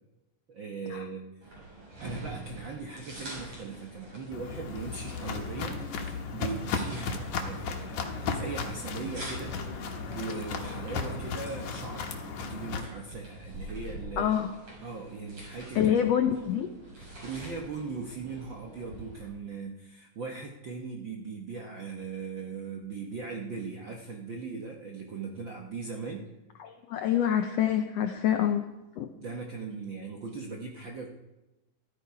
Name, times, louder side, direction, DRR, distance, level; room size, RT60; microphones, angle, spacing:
voice 1, 0.5-1.6 2.0-9.6 10.1-14.3 14.8-16.0 16.3-16.4 17.0-26.3 29.1-31.1, right 4 dB, 65° right, 0 dB, 1.1 m, -39 dB
sound 1, 1.4-19.3, right 1 dB, 40° right, 7.4 m, -46 dB
Walk footsteps, 4.3-12.8, left 4 dB, 65° left, 2.5 m, -35 dB
voice 2, 14.2-14.5 15.7-16.7 26.6-28.7 29.0-29.1, left 9 dB, 90° left, 6 dB, 1.4 m, -26 dB
14.5 x 13.5 x 4.7 m, 1.0 s
omnidirectional pair, 3.9 m